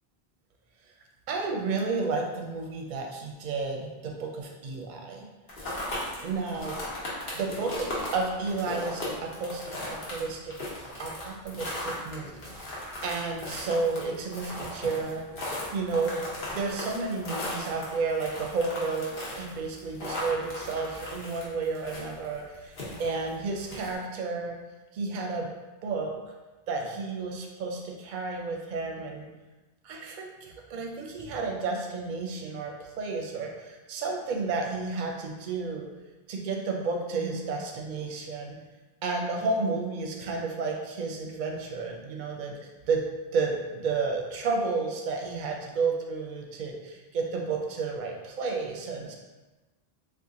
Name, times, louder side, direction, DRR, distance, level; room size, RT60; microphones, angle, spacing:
voice 1, 1.3-5.2 6.2-6.8 7.3-10.5 11.0-15.3 15.7-24.6 24.9-25.5 25.8-26.1 26.7-29.3 29.8-35.9 36.3-38.6 39.0-43.1 43.3-49.1, right 4 dB, 55° right, 1 dB, 0.6 m, -32 dB
sound 1, 5.5-23.9, left 1 dB, 65° left, 1.1 m, -37 dB
2.8 x 2.4 x 3.6 m, 1.2 s
omnidirectional pair, 1.0 m